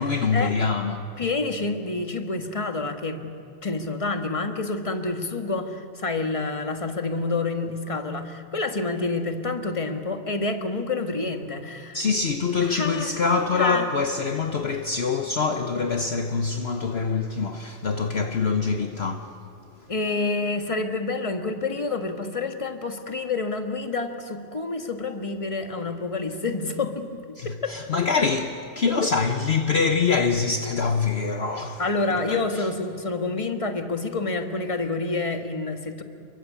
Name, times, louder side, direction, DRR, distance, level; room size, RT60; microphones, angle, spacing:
voice 1, 0.0-1.1 11.9-19.3 27.4-31.8 32.1-32.7, left 5 dB, 55° left, 1.2 m, -25 dB
voice 2, 1.2-3.3 3.6-12.0 12.6-13.2 13.5-13.8 19.9-27.2 27.6-27.8 28.8-28.9 31.8-36.0, left 3 dB, 25° left, 1.6 m, -28 dB
29.0 x 23.0 x 8.5 m
omnidirectional pair, 1.4 m